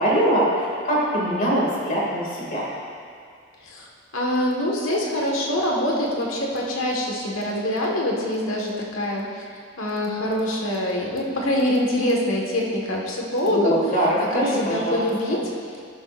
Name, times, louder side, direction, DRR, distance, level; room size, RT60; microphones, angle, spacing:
voice 1, 0.0-2.7 13.5-15.0 15.3-15.4, right 1 dB, 40° left, -5 dB, 2.5 m, -22 dB
voice 2, 4.1-13.7 14.0-15.4, left 1 dB, 75° left, -2 dB, 1.7 m, -25 dB
12.5 x 11.5 x 2.6 m, 2.2 s
head